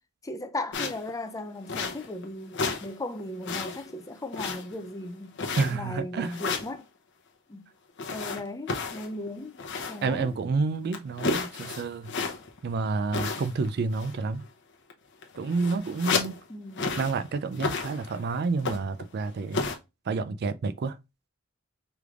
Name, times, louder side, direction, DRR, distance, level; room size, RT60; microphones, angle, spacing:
voice 1, 0.2-5.3 5.7-6.8 7.5-7.7 8.1-9.6 9.9-10.4 16.5-17.0, left 2 dB, 15° left, 0.5 m, -37 dB
sound 1, 0.7-1.1 1.7-2.2 2.5-2.9 3.2-3.9 4.3-4.9 5.4-5.9 6.3-6.8 8.0-10.1 10.4-10.5 10.9-12.6 13.1-13.7 13.9-14.2 14.9-15.0 15.2-16.4 16.8-17.2 17.5-18.2 18.6-19.0 19.5-19.8, left 4 dB, 60° left, 0.8 m, -32 dB
voice 2, 5.6-6.3 10.0-12.1 12.6-14.4 15.4-16.4 17.0-19.6 20.1-21.0, right 4 dB, 55° right, 0.4 m, -29 dB
4.9 x 3.2 x 2.4 m
head